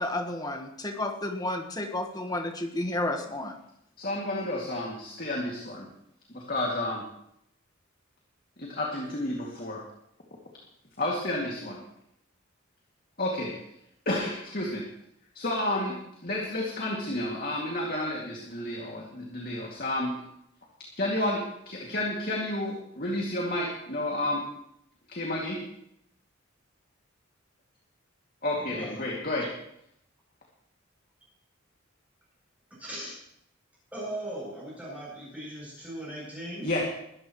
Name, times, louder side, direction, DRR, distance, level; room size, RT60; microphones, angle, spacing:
voice 1, 0.0-3.6, left 1 dB, 20° left, 5 dB, 1.3 m, -31 dB
voice 2, 4.0-5.8 6.3-7.0 8.6-9.9 11.0-11.8 13.2-13.5 14.1-14.9 15.3-20.1 21.0-24.5 25.1-25.6 28.4-29.5 36.6-36.8, left 1 dB, 45° left, -2 dB, 2.4 m, -31 dB
voice 3, 28.5-28.9 32.8-33.2 33.9-36.7, right 1 dB, 5° right, -7 dB, 7.5 m, -38 dB
21.0 x 13.5 x 3.2 m, 0.76 s
head